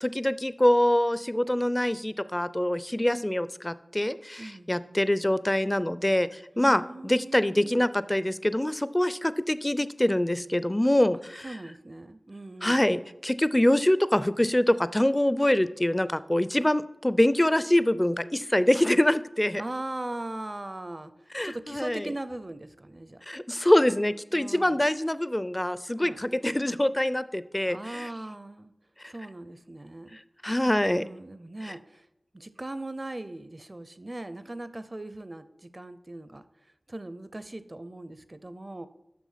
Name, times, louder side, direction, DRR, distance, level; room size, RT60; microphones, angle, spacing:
voice 1, 0.0-11.4 12.6-19.6 21.3-22.1 23.3-28.1 30.4-31.0 31.7-31.8, left 1 dB, 20° left, 15 dB, 0.4 m, -24 dB
voice 2, 4.4-4.7 6.5-7.7 11.4-12.8 19.6-21.1 21.4-23.2 24.3-24.9 26.0-26.2 27.7-28.7 29.1-30.2 30.6-32.1 32.3-36.4 36.9-38.9, right 1 dB, 35° right, 13 dB, 0.5 m, -39 dB
6.3 x 6.1 x 5.6 m, 0.85 s
wide cardioid pair, 50°, 0 cm